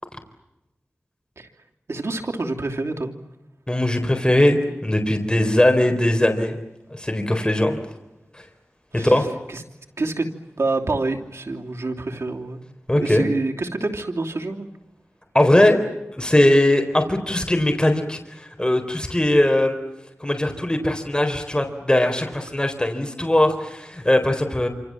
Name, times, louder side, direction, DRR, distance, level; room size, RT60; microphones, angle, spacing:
voice 1, 1.9-3.1 8.9-9.2 9.5-9.6 10.0-10.3 10.6-12.6 13.0-14.7, right 3 dB, 85° right, 2 dB, 3.0 m, -27 dB
voice 2, 3.7-6.6 6.9-7.8 8.9-9.3 12.9-13.2 15.3-15.8 16.1-19.8 20.2-24.7, left 1 dB, 20° left, 5 dB, 4.0 m, -20 dB
27.5 x 27.0 x 7.6 m, 0.93 s
wide cardioid pair, 70°, 5 cm